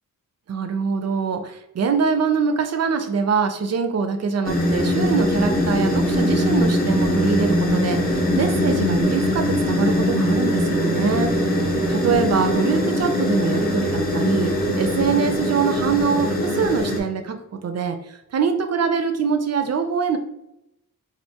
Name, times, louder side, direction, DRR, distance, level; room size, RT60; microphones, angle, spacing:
voice 1, 0.5-11.6 11.9-20.2, right 5 dB, 50° right, 8 dB, 0.4 m, -24 dB
sound 1, 4.4-17.0, left 1 dB, 25° left, 0.7 m, -21 dB
4.4 x 2.4 x 2.8 m, 0.86 s
wide cardioid pair, 155°, 34 cm